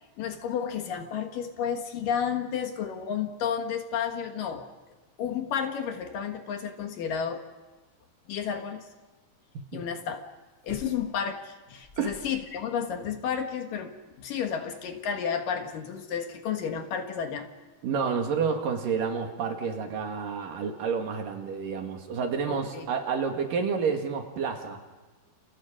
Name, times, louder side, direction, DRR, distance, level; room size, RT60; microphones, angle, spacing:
voice 1, 0.2-4.7 5.2-7.4 8.3-8.9 9.7-10.2 10.6-17.5 22.5-22.9, left 7 dB, 65° left, 5 dB, 2.9 m, -32 dB
sound 1, 10.6-11.3 11.8-12.6 12.9-13.0, left 2 dB, 20° left, 2.4 m, -46 dB
voice 2, 17.8-24.8, right 6 dB, 65° right, 4 dB, 3.5 m, -29 dB
30.0 x 29.0 x 5.1 m, 1.2 s
omnidirectional pair, 4.5 m